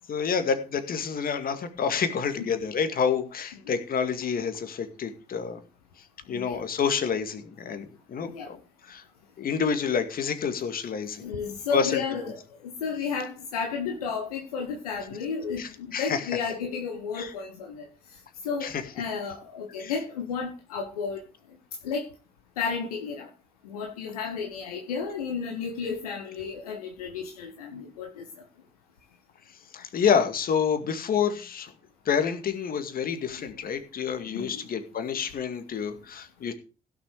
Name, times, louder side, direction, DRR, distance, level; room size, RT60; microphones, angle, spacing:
voice 1, 0.1-5.6 6.3-8.6 8.9-9.0 9.4-11.2 11.7-12.0 15.6-16.2 17.1-17.3 18.6-18.7 19.8-19.9 29.7-31.7 32.1-36.5, left 6 dB, 50° left, 9 dB, 2.1 m, -28 dB
voice 2, 11.2-17.9 18.4-18.7 18.9-21.2 21.8-22.0 22.6-23.3 23.6-28.2 34.3-34.6, left 5 dB, 80° left, 3 dB, 1.2 m, -32 dB
16.0 x 6.8 x 4.9 m, 0.34 s
figure-of-eight pair, 40°, 19 cm